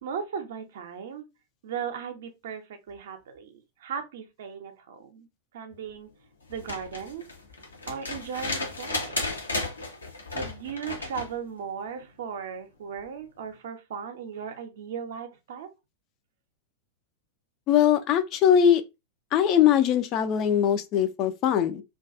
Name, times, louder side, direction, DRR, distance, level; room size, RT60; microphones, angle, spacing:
voice 1, 0.0-1.3 1.6-5.3 5.5-6.1 6.5-7.2 7.9-9.2 10.3-15.7, right 7 dB, 60° right, 0.5 m, -37 dB
sound 1, 6.5-11.3 13.0-13.1, left 2 dB, 80° left, 0.7 m, -34 dB
voice 2, 17.7-18.8 19.3-21.8, left 9 dB, 40° left, 0.3 m, -21 dB
2.3 x 2.2 x 2.4 m
figure-of-eight pair, 95°, 0 cm